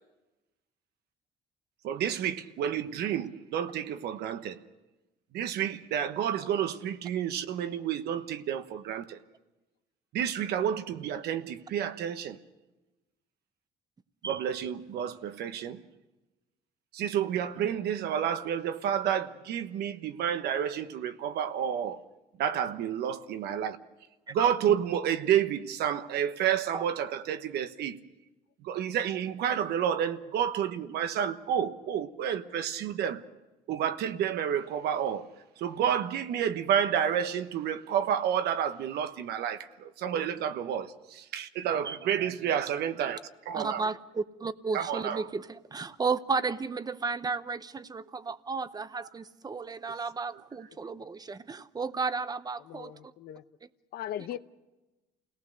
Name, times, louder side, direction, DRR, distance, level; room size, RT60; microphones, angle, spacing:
voice 1, 1.8-4.6 5.3-9.2 10.1-12.4 14.2-15.8 16.9-22.0 22.4-23.8 24.3-28.0 28.6-33.2 33.7-35.3 35.6-43.2 43.4-43.9 44.7-45.2, right 9 dB, 75° right, 10 dB, 1.2 m, -30 dB
voice 2, 43.5-53.1, right 4 dB, 25° right, 13 dB, 0.9 m, -33 dB
voice 3, 52.7-53.4 53.9-54.4, left 11 dB, 65° left, 12 dB, 0.9 m, -39 dB
28.0 x 18.5 x 6.5 m, 1.1 s
cardioid pair, 110°, 17 cm